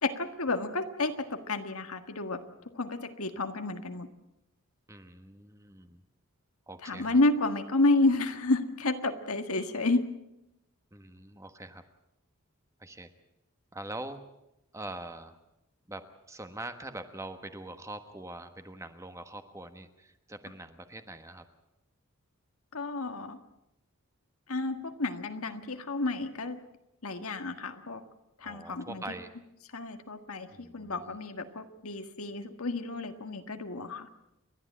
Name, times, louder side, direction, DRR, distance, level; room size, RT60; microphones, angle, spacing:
voice 1, 0.0-2.4 2.7-4.1 6.8-10.1 22.7-23.4 24.5-26.6 27.0-28.0 28.4-29.0 29.7-34.1, left 2 dB, 80° left, 7 dB, 1.7 m, -30 dB
voice 2, 4.9-6.0 6.7-7.2 10.9-11.8 12.8-13.1 13.7-14.2 14.7-15.4 15.9-21.5 28.4-29.3 30.5-31.2, right 2 dB, 15° right, 8 dB, 1.2 m, -43 dB
30.0 x 12.0 x 8.6 m, 0.89 s
head